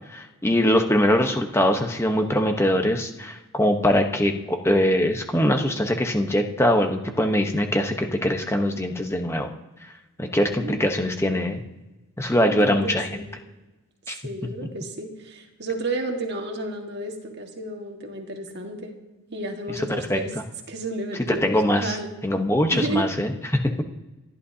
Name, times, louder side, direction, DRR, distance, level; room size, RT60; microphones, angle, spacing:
voice 1, 0.1-9.5 10.2-11.6 12.2-13.1 14.1-14.2 20.1-20.2 21.3-22.0 22.2-23.6, left 1 dB, 10° left, 4 dB, 1.0 m, -22 dB
voice 2, 10.5-10.9 12.3-13.4 14.2-19.0 19.3-20.3 20.7-22.2 22.7-23.1, right 2 dB, 50° right, 2 dB, 1.8 m, -32 dB
28.5 x 11.5 x 2.8 m, 1.1 s
head